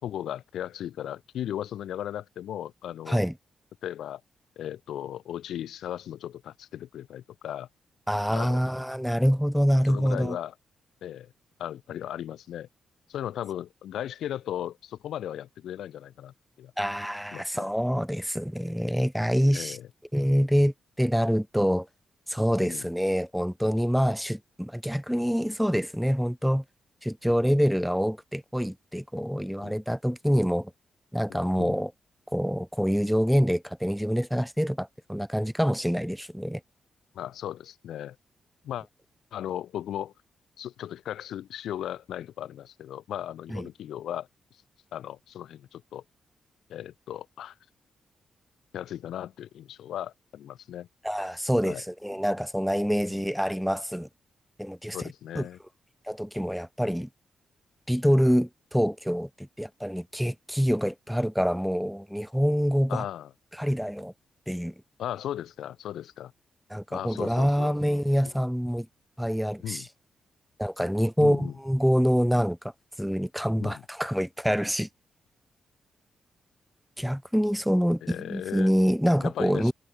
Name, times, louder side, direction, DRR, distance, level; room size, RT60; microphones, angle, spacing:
voice 1, 0.0-3.2 3.8-4.2 4.6-7.7 8.3-8.6 9.9-10.5 11.0-11.3 11.6-12.7 13.1-16.7 17.3-17.7 19.5-19.9 22.6-22.9 29.6-29.8 31.3-31.7 37.1-38.2 38.6-38.9 39.3-40.1 40.6-44.3 44.9-46.0 46.7-47.5 48.7-50.9 51.6-51.8 53.1-53.2 54.9-55.6 62.9-63.3 65.0-66.3 66.9-67.8 68.2-68.3 69.6-69.9 71.2-71.5 73.6-73.8 78.0-78.7 79.2-79.7, left 11 dB, 85° left, 1.8 m, -36 dB
voice 2, 8.1-10.4 16.8-19.8 20.1-21.9 22.3-26.6 27.0-30.7 31.1-31.9 32.3-36.6 43.5-43.7 51.0-54.1 54.6-55.0 55.3-55.5 56.1-57.1 57.9-63.0 63.5-64.1 64.5-64.7 66.7-68.9 69.2-69.9 70.6-72.6 73.0-74.9 77.0-79.7, equal, ahead, 0.6 m, -26 dB
cardioid pair, 65°, 0 cm